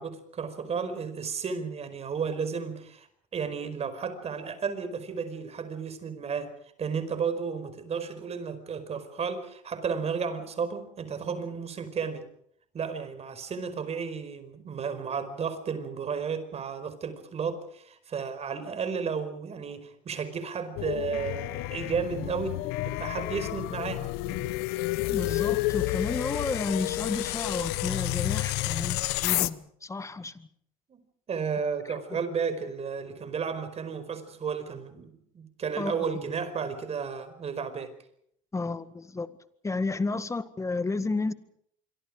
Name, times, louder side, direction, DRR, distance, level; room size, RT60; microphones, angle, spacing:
voice 1, 0.0-3.1 3.3-6.5 6.8-12.3 12.7-24.5 30.9-31.0 31.3-37.9 40.1-40.2, right 6 dB, 40° right, 5.0 m, -33 dB
sound 1, 20.8-29.5, left 18 dB, 80° left, 1.0 m, -30 dB
voice 2, 25.1-30.5 32.1-32.2 35.8-36.1 38.5-39.3 39.6-41.3, left 3 dB, 20° left, 1.9 m, -32 dB
26.5 x 24.5 x 5.1 m
supercardioid pair, 95°, 16 cm